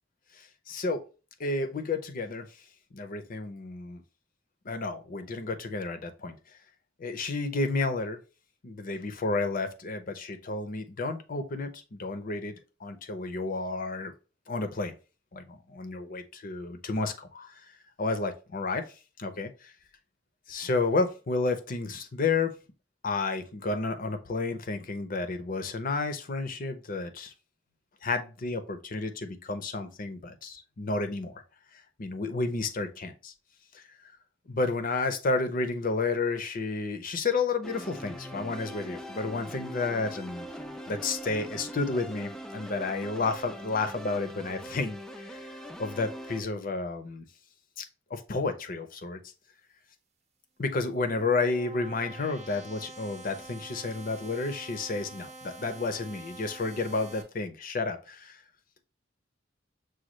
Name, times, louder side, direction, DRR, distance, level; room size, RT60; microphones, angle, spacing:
voice 1, 0.3-1.0 1.4-2.5 2.9-4.0 4.6-6.4 7.0-8.2 8.6-12.5 12.8-14.1 14.5-14.9 15.3-17.5 18.0-18.9 19.2-19.7 20.5-22.5 23.0-27.3 28.0-31.4 32.0-33.3 33.7-33.8 34.5-40.5 40.9-45.5 45.8-47.2 47.8-47.9 48.1-49.2 50.6-58.4, left 3 dB, 45° left, 8 dB, 0.6 m, -31 dB
sound 1, 37.6-46.4, equal, 5° left, 0.3 m, -41 dB
sound 2, 50.7-57.2, right 2 dB, 35° right, 0.7 m, -47 dB
6.2 x 2.3 x 3.0 m, 0.33 s
head